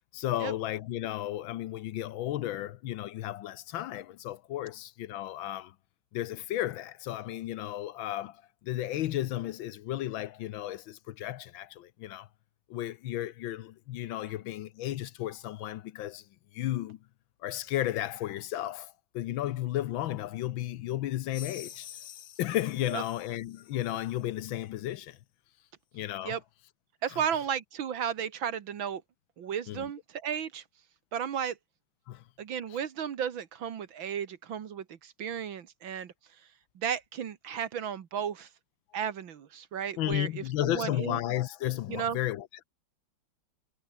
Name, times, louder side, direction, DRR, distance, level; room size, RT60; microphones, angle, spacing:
voice 1, 0.1-5.7 6.1-12.3 12.7-16.3 16.5-17.0 17.4-21.9 22.4-25.2 25.9-26.4 27.1-27.2 29.7-29.8 32.1-32.2 32.7-32.8 40.0-42.6, left 13 dB, 75° left, 1.4 m, -34 dB
sound 1, 21.3-24.3, left 10 dB, 55° left, 1.2 m, -48 dB
voice 2, 27.0-29.0 29.4-30.6 31.1-31.6 32.4-36.1 36.8-38.5 38.9-41.2 41.9-42.2, right 8 dB, 65° right, 2.1 m, -34 dB
omnidirectional pair, 2.3 m